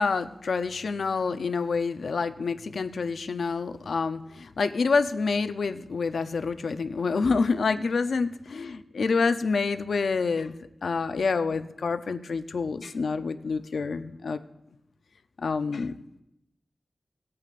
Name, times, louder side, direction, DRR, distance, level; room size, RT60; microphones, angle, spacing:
voice 1, 0.0-10.5 10.8-14.4 15.4-15.9, left 4 dB, 90° left, 10 dB, 0.5 m, -27 dB
19.5 x 8.6 x 2.5 m, 0.86 s
wide cardioid pair, 95°, 0 cm